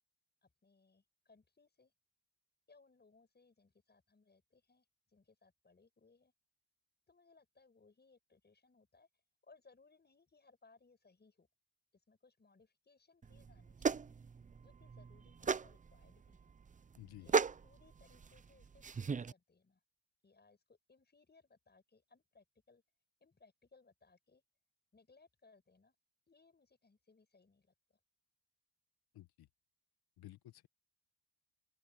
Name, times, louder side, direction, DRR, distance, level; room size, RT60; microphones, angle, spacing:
voice 1, 0.4-1.9 2.7-6.3 7.1-9.1 9.4-11.5 11.9-14.2 14.6-16.5 17.2-19.8 20.2-22.8 23.2-24.4 24.9-26.0 26.3-28.0, left 4 dB, 25° left, 7.3 m, -68 dB
sound 1, 13.2-19.3, right 5 dB, 20° right, 0.5 m, -37 dB
voice 2, 17.0-17.3 29.1-29.5 30.2-30.7, left 15 dB, 75° left, 1.4 m, -54 dB
open air
cardioid pair, 95°, 38 cm